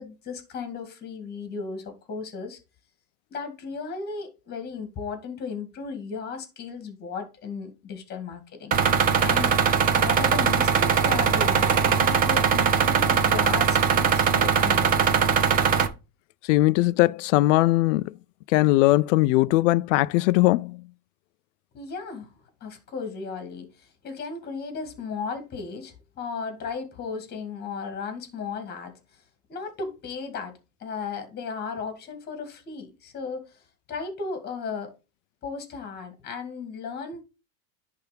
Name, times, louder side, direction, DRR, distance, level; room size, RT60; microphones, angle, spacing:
voice 1, 0.0-2.6 3.3-9.5 9.9-15.2 21.7-22.3 22.6-28.9 29.5-30.5 30.8-33.6 33.9-34.9 35.4-37.2, left 5 dB, 20° left, 2.2 m, -35 dB
sound 1, 8.7-15.9, right 7 dB, 20° right, 0.6 m, -21 dB
voice 2, 16.4-18.1 18.5-20.8, left 18 dB, 55° left, 0.5 m, -20 dB
10.5 x 3.6 x 5.1 m
supercardioid pair, 160°, 45 cm